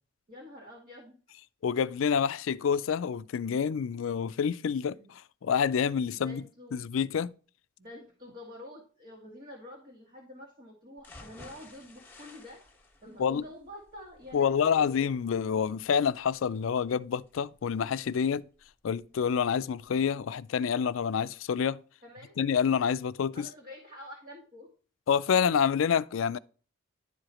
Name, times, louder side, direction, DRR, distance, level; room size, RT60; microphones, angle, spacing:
voice 1, 0.3-1.1 5.0-5.1 6.1-6.8 7.8-12.6 13.0-14.9 22.0-22.4 23.3-24.7, left 1 dB, 40° right, 1.8 m, -47 dB
voice 2, 1.6-6.4 6.7-7.3 13.2-13.4 14.3-18.4 18.8-21.8 22.4-23.5 25.1-26.4, left 7 dB, 75° left, 0.4 m, -28 dB
sound 1, 11.0-19.0 19.4-19.5 19.8-19.9, left 2 dB, 10° left, 1.6 m, -55 dB
11.0 x 4.9 x 2.9 m
head